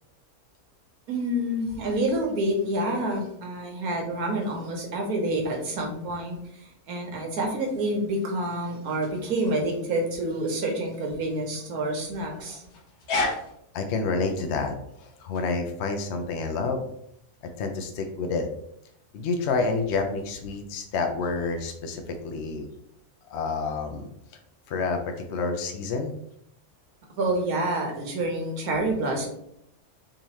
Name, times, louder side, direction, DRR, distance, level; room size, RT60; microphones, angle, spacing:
voice 1, 1.1-12.7 27.2-29.3, right 1 dB, 80° right, 1 dB, 1.4 m, -28 dB
sound 1, 7.6-21.9, left 3 dB, 90° left, 1.4 m, -39 dB
voice 2, 13.7-16.9 17.6-18.5 19.1-22.7 23.3-24.1 24.7-26.1, left 4 dB, 65° left, 4 dB, 0.7 m, -29 dB
3.8 x 2.8 x 3.0 m, 0.73 s
omnidirectional pair, 1.6 m